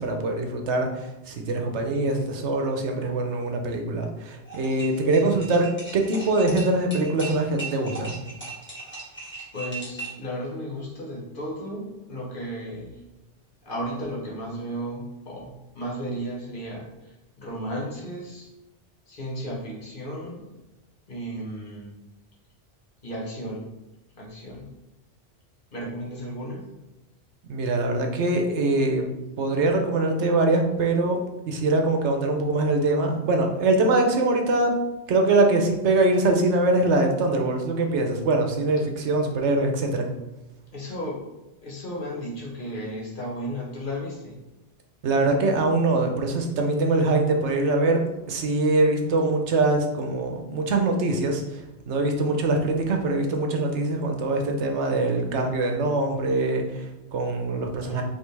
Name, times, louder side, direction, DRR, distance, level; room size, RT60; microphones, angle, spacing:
voice 1, 0.0-8.2 27.5-29.1 29.4-31.2 31.5-34.8 35.1-40.1 45.0-48.0 48.3-51.6 51.9-58.0, right 2 dB, 80° right, 3 dB, 1.0 m, -23 dB
sound 1, 4.5-10.3, right 3 dB, 10° left, 1.4 m, -38 dB
voice 2, 9.5-13.0 13.6-16.9 17.4-18.5 19.1-20.5 21.1-21.9 23.0-23.6 24.2-24.7 25.7-26.7 40.7-41.2 41.6-44.3 57.8-58.0, equal, 50° left, -3 dB, 1.3 m, -34 dB
5.4 x 2.8 x 3.2 m, 1.0 s
omnidirectional pair, 1.2 m